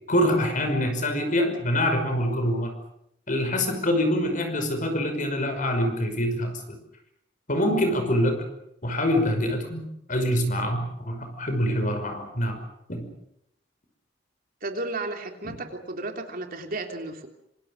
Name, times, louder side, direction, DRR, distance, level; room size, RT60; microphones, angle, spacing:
voice 1, 0.1-2.8 3.3-6.6 7.5-8.5 8.8-12.6 12.9-13.1 15.4-15.6, equal, 45° left, 6 dB, 5.6 m, -25 dB
voice 2, 14.6-17.3, right 2 dB, 50° right, 4 dB, 3.3 m, -33 dB
26.0 x 26.0 x 6.5 m, 0.77 s
head